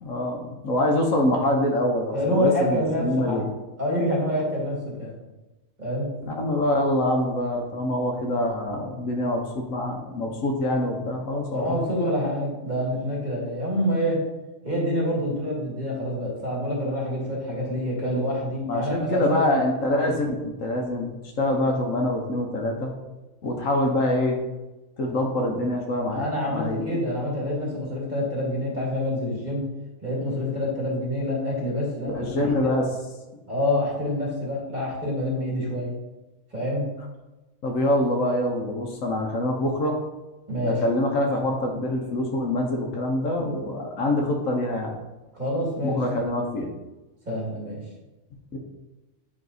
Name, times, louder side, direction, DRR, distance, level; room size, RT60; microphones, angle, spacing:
voice 1, 0.0-3.4 6.2-11.8 18.7-22.9 23.4-24.4 25.0-26.8 32.1-33.0 37.6-40.0 40.6-44.9 45.8-46.7 48.5-48.6, left 1 dB, 70° left, 2 dB, 1.3 m, -25 dB
voice 2, 2.1-3.4 3.8-5.2 5.8-6.1 11.5-14.2 14.6-19.6 21.6-21.8 26.1-29.6 30.0-32.5 33.5-35.9 36.5-36.9 40.5-40.8 45.3-46.0 47.3-47.8, left 1 dB, 30° right, -4 dB, 2.4 m, -27 dB
9.2 x 3.2 x 4.1 m, 1.1 s
omnidirectional pair, 1.5 m